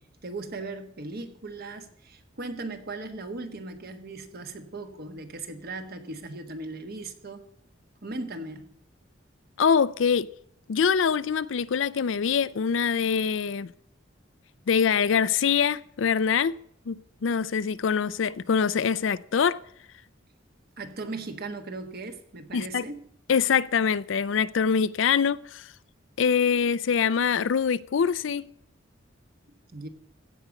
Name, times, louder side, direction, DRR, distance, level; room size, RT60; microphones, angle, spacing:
voice 1, 0.0-7.5 8.0-8.7 20.8-23.0 29.5-29.9, right 3 dB, 50° right, 7 dB, 1.3 m, -38 dB
voice 2, 9.6-10.3 10.7-13.7 14.7-16.5 16.9-19.6 22.5-22.8 23.3-25.7 26.2-28.5, left 6 dB, 70° left, 18 dB, 0.4 m, -24 dB
15.5 x 5.2 x 8.1 m, 0.68 s
head